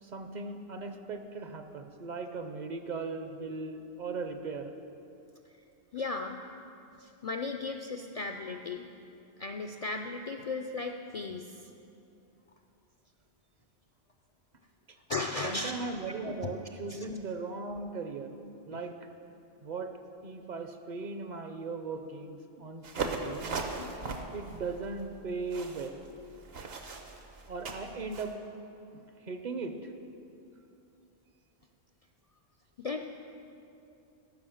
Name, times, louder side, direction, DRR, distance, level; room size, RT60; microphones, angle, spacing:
voice 1, 0.0-4.7 14.9-15.0 15.4-18.4 18.7-19.1 19.6-19.9 20.2-23.8 24.3-26.1 27.5-28.4 28.9-29.9, right 3 dB, 50° right, 7 dB, 0.7 m, -38 dB
voice 2, 5.9-6.4 7.0-8.9 9.4-11.7 15.1-15.7 16.3-16.6 16.9-17.2 18.7-18.9 23.8-24.1 32.8-33.0, left 3 dB, 55° left, 4 dB, 0.4 m, -36 dB
sound 1, 22.8-28.3, right 4 dB, 70° right, 1.1 m, -38 dB
13.5 x 6.1 x 6.3 m, 2.8 s
omnidirectional pair, 1.1 m